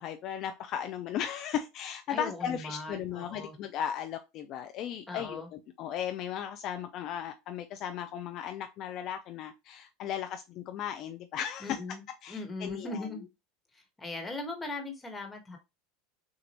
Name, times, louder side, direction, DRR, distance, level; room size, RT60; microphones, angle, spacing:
voice 1, 0.0-11.8 12.2-13.2, left 9 dB, 50° left, 0.5 m, -36 dB
voice 2, 2.1-3.5 5.1-5.5 11.6-12.0 12.3-13.2 14.0-15.6, left 2 dB, 15° left, 1.5 m, -39 dB
6.2 x 2.5 x 3.0 m
supercardioid pair, 115°, 0 cm